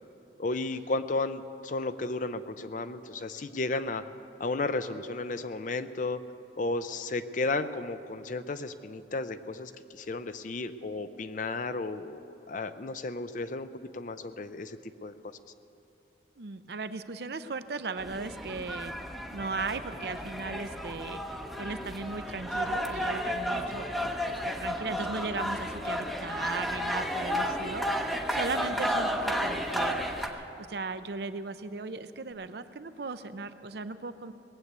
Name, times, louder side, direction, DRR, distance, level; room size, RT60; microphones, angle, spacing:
voice 1, 0.4-4.0 4.4-6.2 6.6-15.4, left 3 dB, 45° left, 11 dB, 0.5 m, -33 dB
voice 2, 16.4-18.9 19.3-21.2 21.6-34.3, right 3 dB, 60° right, 11 dB, 0.6 m, -37 dB
sound 1, 18.0-30.3, equal, ahead, 0.8 m, -32 dB
Female singing, 27.1-30.3 32.3-32.4, equal, 70° left, 1.6 m, -49 dB
19.5 x 8.1 x 8.2 m, 2.9 s
head